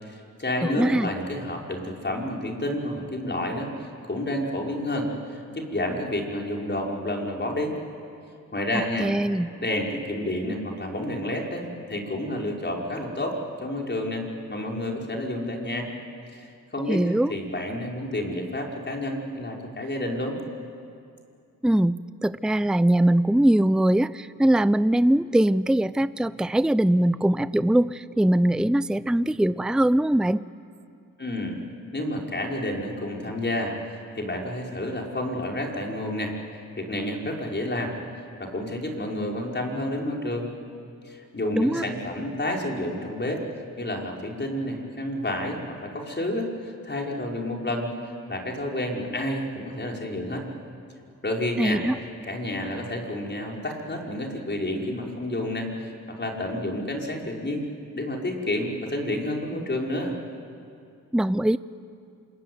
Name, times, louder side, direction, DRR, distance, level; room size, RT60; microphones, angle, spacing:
voice 1, 0.0-7.7 8.5-9.1 9.6-15.9 16.3-20.4 31.2-31.6 31.9-36.3 36.8-37.9 38.4-40.5 41.1-43.4 43.8-50.4 51.2-51.8 52.3-57.6 57.9-60.2, left 1 dB, 30° left, 0 dB, 5.4 m, -30 dB
voice 2, 0.8-1.1 9.0-9.5 16.9-17.3 21.6-30.4 41.5-41.8 51.6-51.9 61.1-61.6, right 1 dB, ahead, 16 dB, 0.6 m, -21 dB
27.0 x 22.0 x 9.6 m, 2.5 s
cardioid pair, 60°, 33 cm